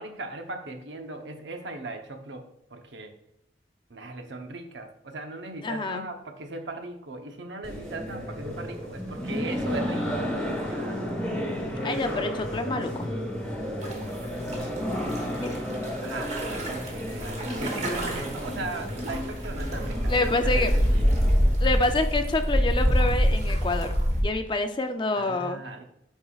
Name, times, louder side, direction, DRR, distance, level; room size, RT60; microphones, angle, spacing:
voice 1, 0.0-2.4 2.7-3.1 3.9-10.3 10.7-11.0 11.4-11.7 13.9-14.5 16.0-21.1 25.1-25.8, right 2 dB, 80° right, 5 dB, 0.8 m, -38 dB
voice 2, 5.6-6.0 11.8-13.1 15.4-15.5 20.1-20.7 21.2-21.3 21.6-23.9 24.2-25.6, left 2 dB, 25° left, 7 dB, 0.4 m, -27 dB
sound 1, 7.6-21.5, equal, 5° left, 1.4 m, -32 dB
sound 2, 13.8-24.2, equal, 40° right, 1.3 m, -26 dB
8.8 x 4.5 x 2.4 m, 0.78 s
head